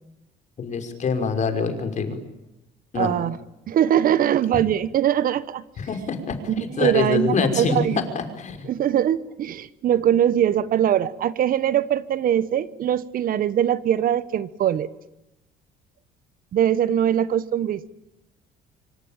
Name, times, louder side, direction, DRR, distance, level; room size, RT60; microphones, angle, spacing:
voice 1, 0.6-2.2 2.9-3.1 5.8-8.7, left 5 dB, 45° left, 7 dB, 5.5 m, -25 dB
voice 2, 2.9-3.4 3.7-5.6 6.5-8.1 8.6-14.9 16.5-17.9, right 10 dB, 55° right, 16 dB, 1.2 m, -22 dB
26.0 x 25.5 x 9.0 m, 0.91 s
cardioid pair, 110°, 17 cm